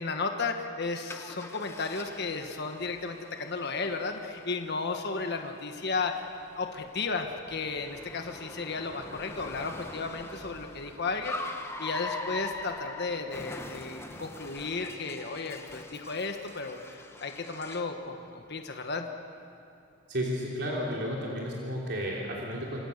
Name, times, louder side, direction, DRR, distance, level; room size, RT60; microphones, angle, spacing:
voice 1, 0.0-6.2 6.6-11.4 11.8-19.1, left 4 dB, 55° left, 5 dB, 1.4 m, -34 dB
Car, 1.1-18.0, left 2 dB, 15° left, 1.3 m, -43 dB
voice 2, 20.1-22.8, equal, 60° right, -3 dB, 3.4 m, -32 dB
27.0 x 26.0 x 6.7 m, 2.7 s
head